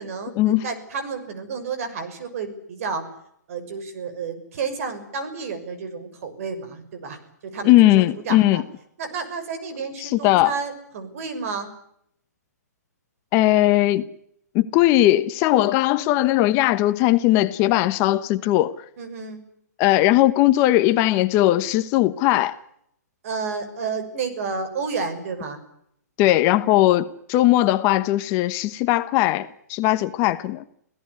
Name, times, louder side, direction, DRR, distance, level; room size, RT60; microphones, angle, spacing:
voice 1, 0.0-3.0 3.5-7.2 7.5-8.6 9.0-11.7 19.0-19.4 23.2-25.6, right 5 dB, 55° right, 6.3 m, -31 dB
voice 2, 7.6-8.6 10.0-10.5 13.3-14.1 14.5-18.7 19.8-22.6 26.2-30.6, left 15 dB, 30° left, 1.1 m, -19 dB
26.5 x 17.0 x 9.6 m
hypercardioid pair, 145°, 9 cm